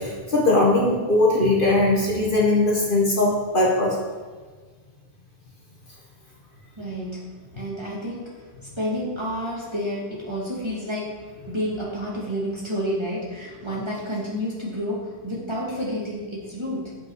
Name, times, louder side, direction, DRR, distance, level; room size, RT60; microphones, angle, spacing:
voice 1, 0.0-4.0, left 2 dB, 45° left, -3 dB, 1.8 m, -20 dB
voice 2, 6.8-17.0, equal, 25° right, -6 dB, 2.4 m, -30 dB
9.0 x 7.8 x 4.8 m, 1.4 s
omnidirectional pair, 1.2 m